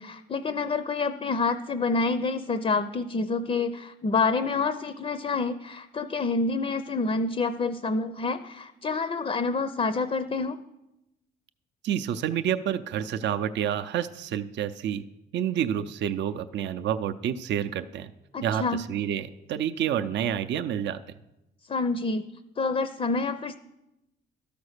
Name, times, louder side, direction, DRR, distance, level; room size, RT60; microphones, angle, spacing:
voice 1, 0.0-10.6 18.3-18.8 21.7-22.2 22.6-23.6, left 4 dB, 30° left, 11 dB, 0.5 m, -27 dB
voice 2, 11.8-15.0 15.3-18.1 18.4-21.0, right 9 dB, 65° right, 10 dB, 0.5 m, -29 dB
12.5 x 5.1 x 6.5 m, 0.94 s
cardioid pair, 90°, 20 cm